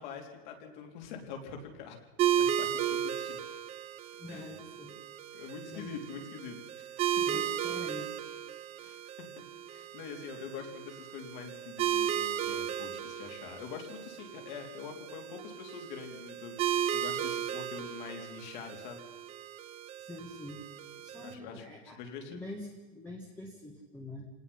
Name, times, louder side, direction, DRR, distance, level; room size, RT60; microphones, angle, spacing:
voice 1, 0.0-2.0 2.4-3.4 4.3-4.5 5.3-7.2 8.8-9.3 9.7-19.0 21.2-22.5, left 6 dB, 45° left, 3 dB, 4.0 m, -45 dB
sound 1, 2.2-21.3, right 10 dB, 20° right, 0.9 m, -35 dB
voice 2, 4.2-5.0 5.3-6.0 7.3-8.2 20.0-20.6 21.0-22.0 22.3-24.3, left 1 dB, 5° left, -1 dB, 1.7 m, -45 dB
27.0 x 18.5 x 5.7 m, 1.2 s
supercardioid pair, 175°, 32 cm